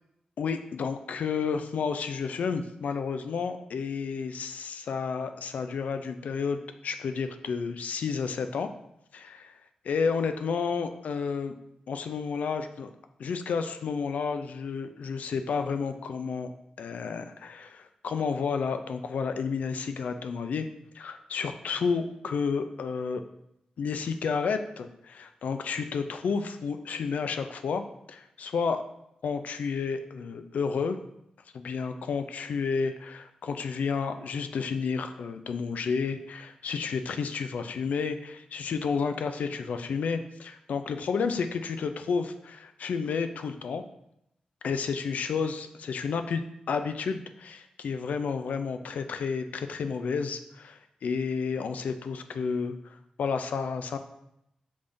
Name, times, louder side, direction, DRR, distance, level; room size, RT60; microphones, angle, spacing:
voice 1, 0.4-8.7 9.1-9.5 9.8-11.6 11.9-12.9 13.2-16.5 16.8-20.7 20.9-23.2 23.8-27.8 28.1-28.8 29.2-31.0 31.5-43.8 44.6-54.0, left 5 dB, 80° left, 8 dB, 0.3 m, -31 dB
5.1 x 3.4 x 2.6 m, 0.81 s
cardioid pair, 55°, 3 cm